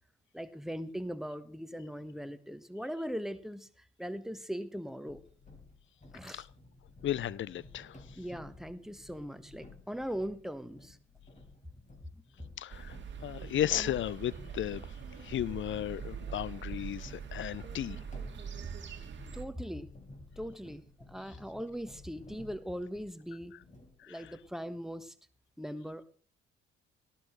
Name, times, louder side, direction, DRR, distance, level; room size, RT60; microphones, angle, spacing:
voice 1, 0.3-5.2 6.1-6.4 8.2-11.0 19.3-19.9 20.4-23.5 24.1-25.1 25.6-26.0, equal, ahead, 1.4 m, -40 dB
sound 1, 5.1-23.2 23.6-24.5, left 2 dB, 20° left, 4.3 m, -55 dB
voice 2, 7.0-8.2 12.6-13.0 13.2-14.9 15.2-18.0 24.0-24.3, left 11 dB, 40° left, 0.6 m, -35 dB
sound 2, 12.7-19.4, right 7 dB, 35° right, 2.3 m, -43 dB
18.5 x 13.5 x 3.2 m
figure-of-eight pair, 50°, 32 cm